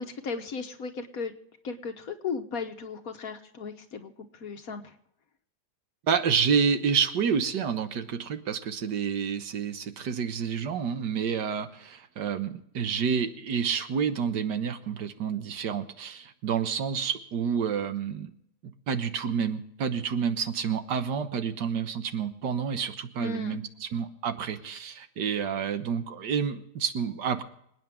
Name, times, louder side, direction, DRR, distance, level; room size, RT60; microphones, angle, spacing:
voice 1, 0.0-1.3 1.6-4.1 4.4-4.9 23.2-23.6, left 4 dB, 60° left, 7 dB, 1.4 m, -35 dB
voice 2, 6.1-18.3 18.6-27.4, right 7 dB, 80° right, 9 dB, 1.8 m, -29 dB
27.0 x 9.4 x 3.6 m, 0.74 s
omnidirectional pair, 1.8 m